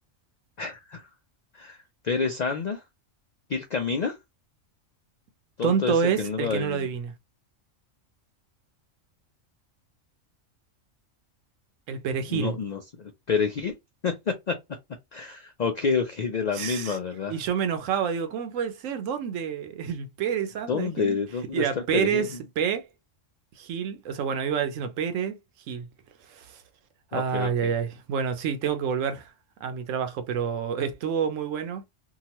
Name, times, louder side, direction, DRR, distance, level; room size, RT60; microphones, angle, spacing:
voice 1, 0.6-1.0 1.5-1.8 2.0-2.8 3.5-4.2 5.6-6.9 12.3-13.7 14.0-14.6 15.1-17.3 20.7-21.7 21.9-22.4 27.1-27.7, left 5 dB, 90° left, 0.3 m, -28 dB
voice 2, 5.6-7.1 11.9-12.6 16.5-17.0 17.3-21.2 21.5-22.3 22.6-22.8 23.6-25.4 25.7-25.9 26.3-26.6 27.1-29.3 29.6-31.8, right 7 dB, 80° right, 1.0 m, -28 dB
2.8 x 2.3 x 2.8 m
omnidirectional pair, 1.3 m